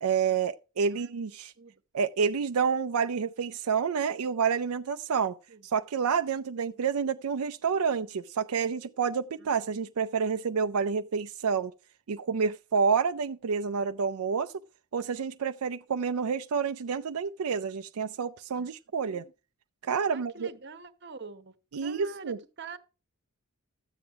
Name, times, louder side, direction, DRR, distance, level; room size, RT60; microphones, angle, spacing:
voice 1, 0.0-1.5 1.9-5.4 5.6-11.7 12.1-14.5 14.9-19.3 19.8-20.5 21.7-22.4, right 6 dB, 80° right, 0.5 m, -29 dB
voice 2, 19.0-19.3 20.1-21.5 21.8-22.8, right 4 dB, 50° right, 1.0 m, -45 dB
13.0 x 7.9 x 4.6 m
head